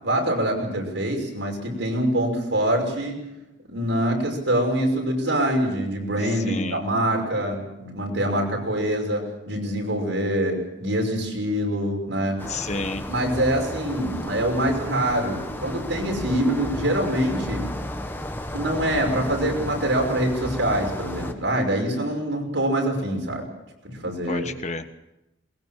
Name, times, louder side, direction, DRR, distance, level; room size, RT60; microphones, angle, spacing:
voice 1, 0.0-3.2 3.7-12.4 13.1-17.6 18.5-23.5 23.8-24.5, right 1 dB, 75° right, 2 dB, 6.0 m, -25 dB
voice 2, 6.2-6.8 12.5-13.0 24.3-25.0, left 3 dB, 35° left, 9 dB, 1.3 m, -31 dB
sound 1, 12.4-21.3, left 1 dB, 10° left, 1.4 m, -33 dB
21.5 x 21.0 x 7.4 m, 0.90 s
head